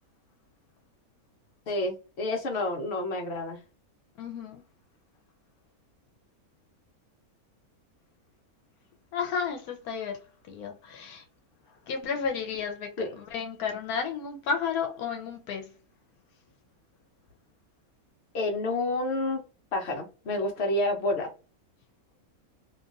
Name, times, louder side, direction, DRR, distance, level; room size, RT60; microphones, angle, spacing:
voice 1, 1.7-3.6 13.0-13.1 18.3-19.4 19.7-21.3, left 2 dB, 50° left, 1.1 m, -29 dB
voice 2, 4.2-4.6 9.1-11.2 11.9-15.7, left 6 dB, 85° left, 1.1 m, -32 dB
2.9 x 2.5 x 2.4 m
omnidirectional pair, 1.5 m